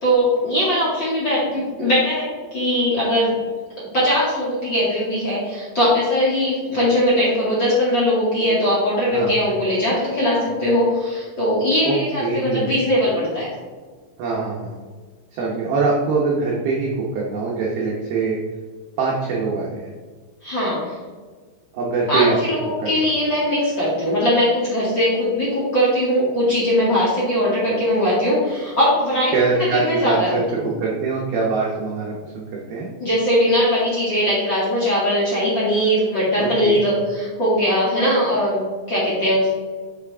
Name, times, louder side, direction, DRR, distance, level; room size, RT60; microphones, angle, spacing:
voice 1, 0.0-3.4 3.9-13.5 20.4-20.9 22.1-30.7 33.0-39.5, equal, 50° left, -8 dB, 1.4 m, -20 dB
voice 2, 11.9-12.8 14.2-14.8 15.3-18.4 19.0-19.9 21.7-22.4 22.8-23.1 29.3-30.4 30.8-32.9 36.4-36.8, right 4 dB, 90° right, -3 dB, 2.1 m, -23 dB
8.5 x 6.3 x 3.5 m, 1.5 s
omnidirectional pair, 5.8 m